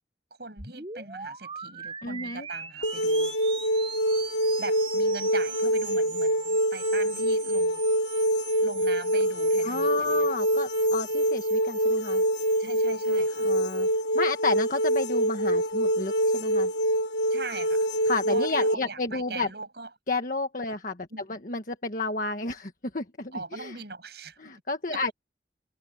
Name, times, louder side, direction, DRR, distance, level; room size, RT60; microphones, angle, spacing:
voice 1, 0.4-3.3 4.6-7.8 8.6-10.3 12.6-13.5 17.3-17.9 18.3-19.9 21.1-21.3 23.3-24.4 24.9-25.0, right 3 dB, 65° right, 7.9 m, -40 dB
sound 1, 0.6-13.9, right 6 dB, 30° right, 7.7 m, -42 dB
voice 2, 2.0-2.5 9.6-12.2 13.4-13.9 14.1-16.7 18.1-19.5 20.1-23.8 24.4-25.1, left 3 dB, 50° left, 1.6 m, -31 dB
sound 2, 2.8-18.7, equal, 85° left, 1.2 m, -25 dB
head